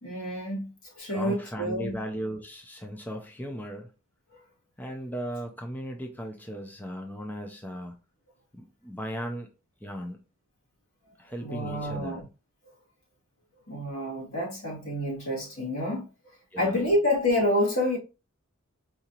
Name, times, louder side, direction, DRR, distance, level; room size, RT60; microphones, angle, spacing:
voice 1, 0.0-2.0 11.4-12.3 13.7-16.1 16.6-18.0, left 1 dB, 85° left, 2.1 m, -28 dB
voice 2, 1.1-3.9 4.8-8.0 8.5-9.5 9.8-10.2 11.2-12.2 16.5-16.8, equal, 10° left, 0.5 m, -37 dB
4.9 x 2.7 x 2.8 m
head